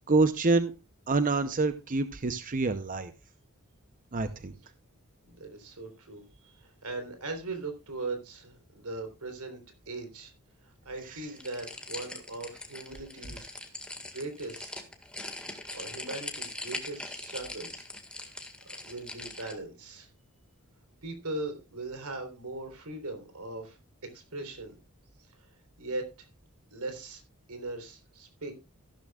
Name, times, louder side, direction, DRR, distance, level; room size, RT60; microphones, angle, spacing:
voice 1, 0.1-0.7 1.1-3.1 4.1-4.5, right 3 dB, 35° right, 11 dB, 0.7 m, -26 dB
voice 2, 5.3-9.6 9.9-10.3 10.6-13.5 14.0-14.8 15.7-17.9 18.2-18.3 18.8-20.1 21.0-24.8 25.2-25.5 25.8-26.3 26.7-27.2 27.5-28.5, right 2 dB, 85° right, 6 dB, 3.7 m, -39 dB
sound 1, 11.4-19.6, left 2 dB, 5° left, 1.7 m, -41 dB
14.5 x 12.5 x 2.4 m, 0.27 s
head